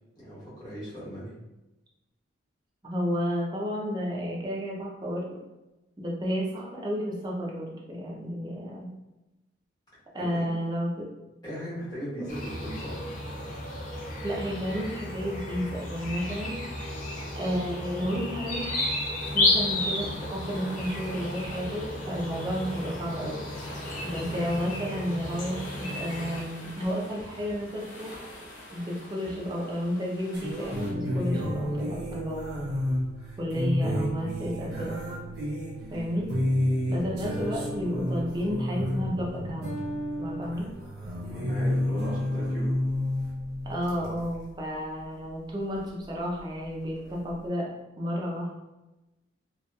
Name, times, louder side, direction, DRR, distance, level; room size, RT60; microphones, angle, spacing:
voice 1, 0.2-1.3 10.2-10.6 11.4-13.0 35.7-36.0 41.2-42.8, equal, 20° left, -9 dB, 0.9 m, -38 dB
voice 2, 2.8-5.3 6.0-8.9 10.1-11.1 12.2-12.3 14.2-16.6 17.3-18.9 19.3-23.4 24.0-28.2 28.7-32.7 33.4-35.0 35.9-36.3 36.9-39.7 40.2-40.8 43.6-47.7 48.0-48.6, equal, 20° right, -3 dB, 0.4 m, -32 dB
sound 1, 12.3-26.4, left 1 dB, 40° left, 0.5 m, -32 dB
sound 2, 19.2-30.9, left 1 dB, 70° left, 0.8 m, -45 dB
sound 3, 30.3-44.4 45.7-45.8 47.0-47.1, left 1 dB, 60° right, 0.7 m, -30 dB
2.7 x 2.4 x 2.2 m, 1.0 s
head